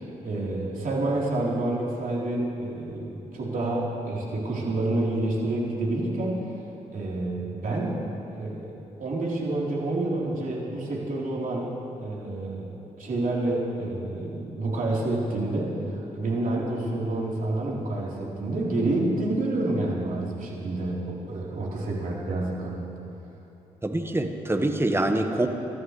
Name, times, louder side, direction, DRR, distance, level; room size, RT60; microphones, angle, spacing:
voice 1, 0.0-6.5 6.9-8.0 8.3-8.7 9.0-11.7 12.0-12.7 13.0-22.9, right 2 dB, 55° right, -4 dB, 4.0 m, -28 dB
voice 2, 23.8-25.5, right 1 dB, 15° right, 5 dB, 1.6 m, -25 dB
26.5 x 13.5 x 3.3 m, 2.9 s
hypercardioid pair, 45°, 17 cm